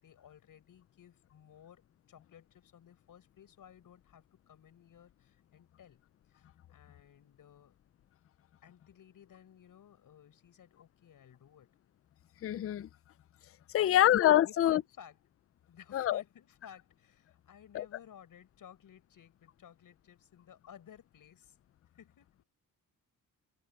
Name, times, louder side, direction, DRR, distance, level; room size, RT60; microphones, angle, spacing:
voice 1, 0.0-6.0 6.3-7.8 8.6-11.7 13.8-15.2 15.7-21.6 22.0-22.5, left 9 dB, 65° left, 5.7 m, -57 dB
voice 2, 12.4-12.9 13.7-14.8 15.9-16.2 17.7-17.8, left 12 dB, 40° left, 0.4 m, -25 dB
wide cardioid pair, 155°, 35 cm